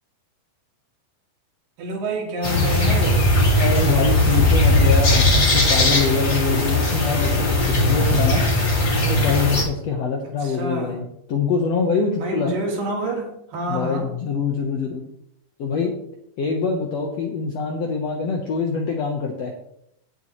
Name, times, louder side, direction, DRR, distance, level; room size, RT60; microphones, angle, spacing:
voice 1, 1.8-3.2 10.4-11.0 12.2-14.1, right 1 dB, 70° right, 0 dB, 3.6 m, -28 dB
sound 1, 2.4-9.6, left 1 dB, 30° left, 2.5 m, -18 dB
voice 2, 3.6-8.4 9.0-12.5 13.7-15.0 15.6-15.9 16.4-19.5, left 5 dB, 65° left, 1 dB, 1.6 m, -24 dB
16.5 x 7.0 x 3.1 m, 0.74 s
omnidirectional pair, 4.2 m